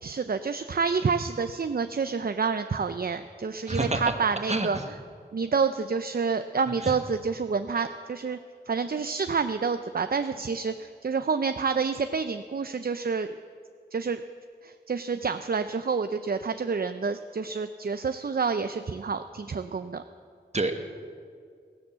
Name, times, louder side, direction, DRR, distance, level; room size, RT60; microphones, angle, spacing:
voice 1, 0.0-4.8 5.3-8.4 8.7-13.3 13.9-14.2 14.6-20.0, right 5 dB, 55° right, 9 dB, 0.5 m, -28 dB
voice 2, 3.7-4.1 4.5-4.9 6.8-6.9 20.5-20.8, right 2 dB, 40° right, 5 dB, 1.5 m, -27 dB
16.0 x 11.0 x 7.4 m, 2.2 s
wide cardioid pair, 45°, 18 cm